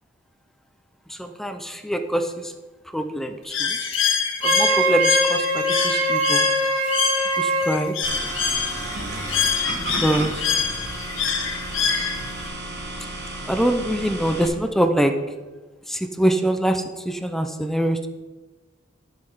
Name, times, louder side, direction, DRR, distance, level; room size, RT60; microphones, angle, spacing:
voice 1, 1.1-2.5 2.9-3.8 4.4-6.5 7.4-8.0 9.7-10.5 13.4-15.2 15.9-18.1, right 1 dB, ahead, 8 dB, 0.5 m, -24 dB
Bird, 3.5-12.5, left 6 dB, 75° left, 1.6 m, -25 dB
Wind instrument woodwind instrument, 4.4-7.8, right 2 dB, 90° right, 2.9 m, -22 dB
sound 1, 8.0-14.5, right 1 dB, 55° right, 1.7 m, -32 dB
12.0 x 5.7 x 5.5 m, 1.2 s
head